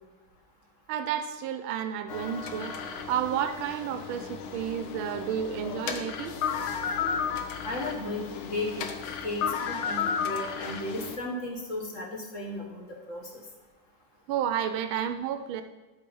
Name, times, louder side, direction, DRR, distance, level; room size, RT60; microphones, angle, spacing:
voice 1, 0.9-6.3 14.3-15.6, right 9 dB, 90° right, 10 dB, 1.4 m, -31 dB
sound 1, 2.1-11.2, left 6 dB, 90° left, 1.7 m, -33 dB
voice 2, 7.6-8.9 9.2-13.3, left 1 dB, 40° left, -1 dB, 1.7 m, -35 dB
12.5 x 4.6 x 5.3 m, 1.2 s
omnidirectional pair, 2.2 m